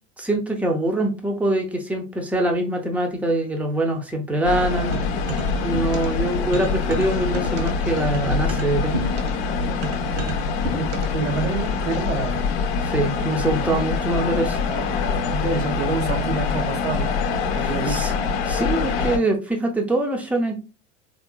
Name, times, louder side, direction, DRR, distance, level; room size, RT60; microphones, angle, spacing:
voice 1, 0.2-5.0 5.5-9.0 12.8-14.6 17.6-18.1 18.5-20.6, right 1 dB, 5° right, 3 dB, 0.7 m, -24 dB
sound 1, 4.4-19.2, left 5 dB, 55° left, 0.7 m, -24 dB
sound 2, 4.9-6.2 6.5-11.3, right 1 dB, 40° right, 0.8 m, -32 dB
voice 2, 10.8-12.4 15.3-17.3 17.5-18.2, right 4 dB, 75° right, 2 dB, 0.9 m, -27 dB
3.6 x 2.8 x 2.3 m, 0.31 s
figure-of-eight pair, 80°, 37 cm